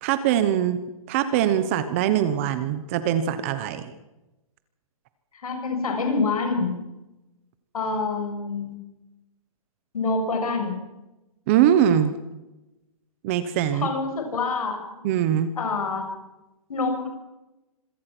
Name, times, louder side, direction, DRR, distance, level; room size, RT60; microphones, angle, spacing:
voice 1, 0.0-0.8 1.1-3.9 11.5-12.1 13.2-13.9 15.0-15.5, right 10 dB, 20° right, 12 dB, 1.0 m, -22 dB
voice 2, 5.4-6.7 7.7-8.8 9.9-10.7 13.7-14.8 15.6-16.0 16.7-17.1, left 4 dB, 75° left, 4 dB, 6.8 m, -26 dB
26.0 x 17.5 x 6.1 m, 0.99 s
hypercardioid pair, 175°, 19 cm